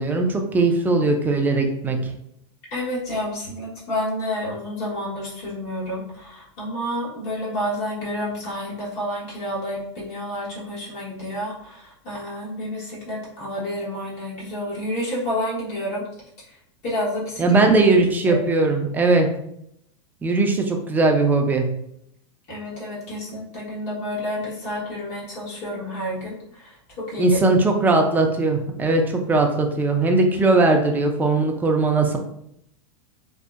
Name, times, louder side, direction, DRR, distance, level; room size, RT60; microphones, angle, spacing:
voice 1, 0.0-2.0 17.4-19.3 20.2-21.7 27.2-32.2, right 3 dB, 10° right, 3 dB, 0.3 m, -19 dB
voice 2, 2.7-16.1 16.5-16.6 16.8-17.6 18.3-18.4 22.5-27.6, equal, 45° left, -6 dB, 1.1 m, -30 dB
2.6 x 2.1 x 2.4 m, 0.74 s
hypercardioid pair, 110°, 16 cm